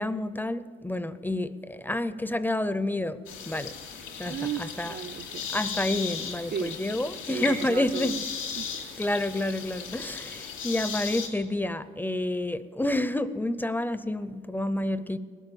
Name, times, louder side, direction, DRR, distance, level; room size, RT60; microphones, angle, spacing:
voice 1, 0.0-3.2 3.5-3.7 4.2-4.9 5.5-8.1 9.0-15.2, left 1 dB, 10° left, 13 dB, 0.6 m, -29 dB
sound 1, 3.3-11.3, left 7 dB, 85° left, 3.1 m, -36 dB
voice 2, 4.2-5.5 6.5-6.8 7.3-8.7, right 9 dB, 55° right, 11 dB, 0.5 m, -35 dB
19.0 x 8.2 x 6.9 m, 2.2 s
cardioid pair, 90°, 20 cm